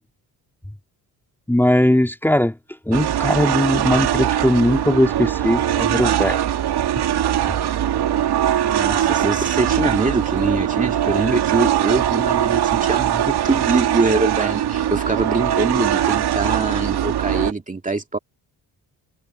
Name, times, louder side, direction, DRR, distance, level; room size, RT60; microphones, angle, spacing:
voice 1, 1.5-2.6 2.9-6.4, left 1 dB, 5° left, 2.6 m, -19 dB
sound 1, 2.9-17.5, right 11 dB, 75° right, 2.5 m, -21 dB
voice 2, 8.6-18.2, right 3 dB, 20° right, 2.3 m, -23 dB
cardioid pair, 105°, 39 cm